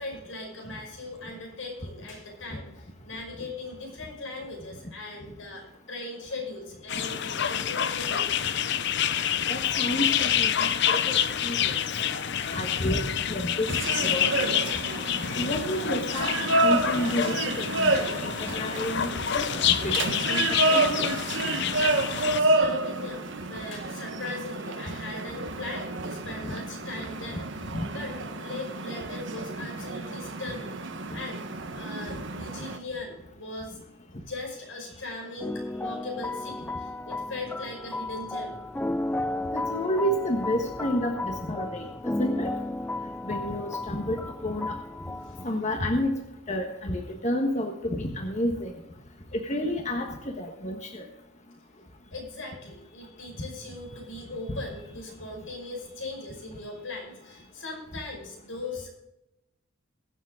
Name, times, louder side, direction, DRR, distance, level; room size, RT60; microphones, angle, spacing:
voice 1, 0.0-2.7 3.0-8.5 13.7-13.8 22.3-31.4 31.7-33.8 34.3-38.5 45.2-45.4 52.1-58.9, left 2 dB, 85° left, 0 dB, 5.5 m, -39 dB
sound 1, 6.9-22.4, left 9 dB, 60° left, 0.6 m, -28 dB
voice 2, 9.5-11.8 12.1-12.3 12.5-13.7 14.0-14.4 15.4-20.4 20.7-21.1 26.4-26.5 27.7-27.9 39.5-41.8 42.2-42.5 43.2-44.2 44.4-44.7 45.4-46.1 46.5-48.7 49.3-51.1 54.5-54.6, left 1 dB, 35° left, 2 dB, 1.4 m, -30 dB
sound 2, 13.7-32.8, right 2 dB, 65° right, 1.2 m, -29 dB
sound 3, 35.4-45.5, left 2 dB, 10° left, 0.3 m, -33 dB
22.0 x 7.4 x 3.8 m, 0.90 s
head